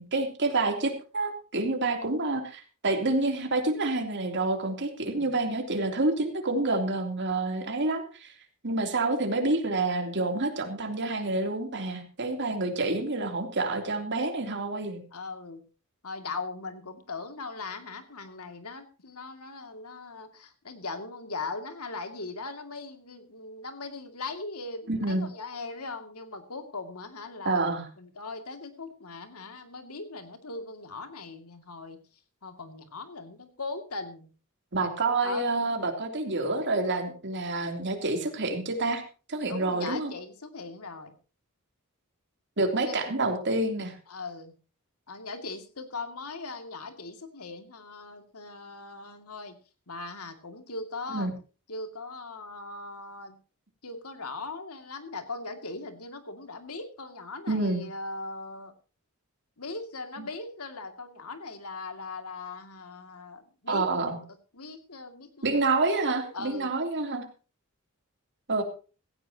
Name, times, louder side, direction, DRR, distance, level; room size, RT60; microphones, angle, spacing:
voice 1, 0.0-8.3 8.6-15.0 24.9-25.3 27.4-27.8 34.7-39.0 39.3-40.1 42.6-43.9 51.1-51.3 57.5-57.8 63.7-64.2 65.4-67.2 68.5-68.6, right 2 dB, 55° right, 4 dB, 3.1 m, -28 dB
voice 2, 5.0-5.3 15.1-15.6 16.0-27.6 28.0-32.0 32.4-34.3 35.2-35.5 39.5-41.1 42.8-43.0 44.1-44.5 45.1-49.6 49.9-51.3 51.7-53.4 53.8-58.7 59.6-63.9 64.5-65.6 66.1-66.7, left 3 dB, 90° left, 7 dB, 2.4 m, -39 dB
16.5 x 16.0 x 2.9 m, 0.35 s
head